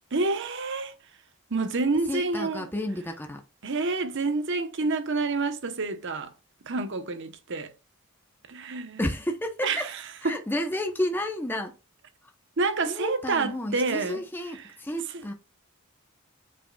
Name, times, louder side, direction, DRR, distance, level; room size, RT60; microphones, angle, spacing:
voice 1, 0.1-0.9 1.5-2.6 3.6-6.3 6.6-7.7 8.5-9.0 9.6-9.9 10.2-10.4 12.6-14.2 15.1-15.2, right 3 dB, 60° right, 0.9 m, -28 dB
voice 2, 2.1-3.4 9.0-9.9 10.2-11.7 12.8-15.3, left 1 dB, 10° left, 0.8 m, -31 dB
8.5 x 4.9 x 2.3 m
head